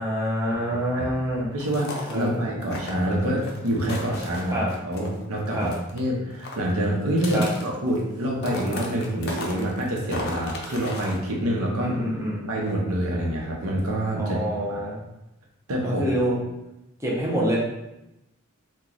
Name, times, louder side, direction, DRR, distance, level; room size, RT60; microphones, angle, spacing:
voice 1, 0.0-1.5 2.1-2.4 4.5-4.7 5.5-5.7 7.3-7.5 11.8-12.5 14.2-15.0 15.8-16.4 17.0-17.6, equal, 10° right, -5 dB, 0.6 m, -26 dB
voice 2, 0.5-1.1 1.5-4.6 4.8-11.9 12.5-14.4 14.7-14.9 15.7-16.0, right 1 dB, 85° right, -2 dB, 0.8 m, -26 dB
sound 1, 1.6-2.3 2.6-5.2 5.4-6.0 6.3-8.1 8.4-11.3, left 2 dB, 45° left, 0.5 m, -36 dB
2.9 x 2.3 x 3.8 m, 0.92 s
head